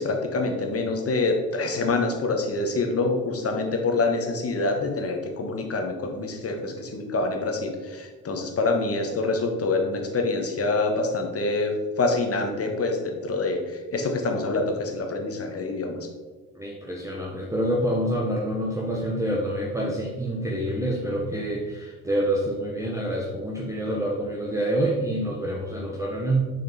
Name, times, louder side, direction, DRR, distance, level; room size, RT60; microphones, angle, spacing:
voice 1, 0.0-16.0, left 3 dB, 30° left, 3 dB, 1.3 m, -26 dB
voice 2, 16.5-26.5, right 1 dB, 5° right, -3 dB, 1.0 m, -27 dB
6.4 x 4.3 x 4.1 m, 1.4 s
figure-of-eight pair, 50°, 45 cm